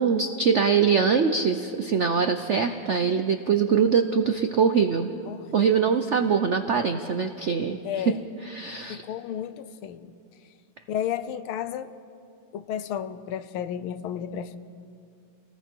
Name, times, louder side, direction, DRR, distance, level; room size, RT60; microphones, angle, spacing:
voice 1, 0.0-5.1 5.5-8.1 8.4-9.0, right 6 dB, 75° right, 7 dB, 0.6 m, -23 dB
voice 2, 7.8-8.2 8.9-10.1 10.9-11.9 12.5-14.6, left 9 dB, 90° left, 12 dB, 1.7 m, -32 dB
30.0 x 19.5 x 4.6 m, 2.6 s
omnidirectional pair, 2.2 m